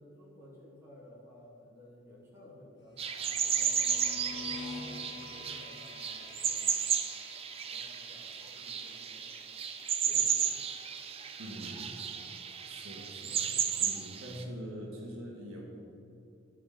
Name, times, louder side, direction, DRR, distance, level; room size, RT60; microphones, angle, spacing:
voice 1, 0.0-7.0 7.5-9.3 10.0-10.6, left 1 dB, 10° right, -7 dB, 2.2 m, -55 dB
sound 1, 3.0-11.8, left 3 dB, 55° left, 1.5 m, -49 dB
sound 2, 3.0-14.4, right 8 dB, 25° right, 0.4 m, -33 dB
voice 2, 11.4-11.9 12.6-13.5 13.8-15.6, equal, 75° right, -1 dB, 1.4 m, -43 dB
10.5 x 4.8 x 5.3 m, 2.7 s
head